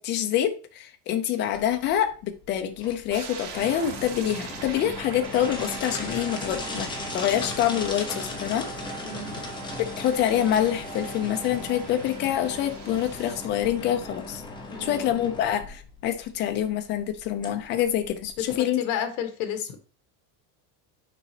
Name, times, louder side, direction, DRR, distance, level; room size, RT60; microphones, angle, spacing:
voice 1, 0.0-8.7 10.0-14.4 14.8-18.8, left 11 dB, 25° left, 7 dB, 0.4 m, -26 dB
sound 1, 1.5-18.6, left 1 dB, 10° left, 0.7 m, -37 dB
sound 2, 3.1-13.4, right 6 dB, 75° right, 2.6 m, -43 dB
voice 2, 6.4-7.2 9.0-9.5 14.7-15.1 18.2-19.8, left 8 dB, 65° left, 8 dB, 1.5 m, -33 dB
6.8 x 4.9 x 2.8 m, 0.40 s
cardioid pair, 180°, 48 cm